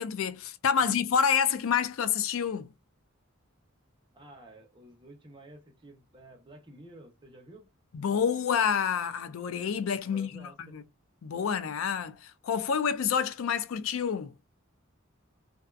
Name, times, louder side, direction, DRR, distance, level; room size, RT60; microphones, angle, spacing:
voice 1, 0.0-2.7 7.9-10.8 11.2-14.3, left 7 dB, 70° left, 0.4 m, -28 dB
voice 2, 4.1-7.7 10.1-10.8, right 1 dB, 25° right, 0.7 m, -51 dB
2.6 x 2.3 x 2.3 m
head